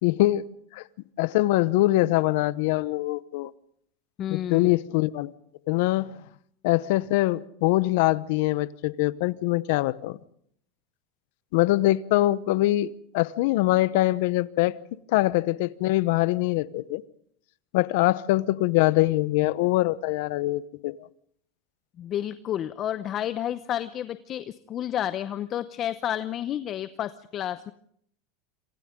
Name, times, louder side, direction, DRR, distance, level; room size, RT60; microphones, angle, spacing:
voice 1, 0.0-0.4 0.7-0.8 1.2-3.5 4.3-5.3 5.7-6.1 6.6-10.2 11.5-14.8 15.1-17.0 17.7-20.9, left 18 dB, 70° left, 0.9 m, -23 dB
voice 2, 4.2-4.7 22.0-27.7, left 11 dB, 40° left, 0.8 m, -31 dB
26.5 x 26.5 x 3.8 m
supercardioid pair, 120°, 0 cm